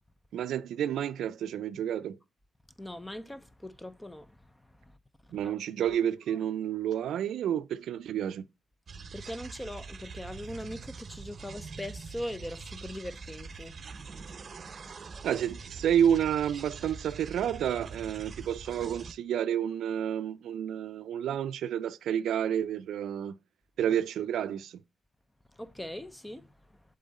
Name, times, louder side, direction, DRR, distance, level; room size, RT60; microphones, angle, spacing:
voice 1, 0.3-2.2 5.3-8.5 15.2-23.3 23.8-24.8, right 9 dB, 85° right, 0.4 m, -30 dB
voice 2, 2.8-5.0 5.2-5.5 5.8-6.0 6.8-7.0 9.1-14.6 14.9-15.1 25.5-26.8, left 1 dB, 10° left, 0.7 m, -41 dB
sound 1, 8.9-19.1, right 5 dB, 45° right, 0.7 m, -44 dB
7.3 x 3.8 x 4.1 m
cardioid pair, 95°, 0 cm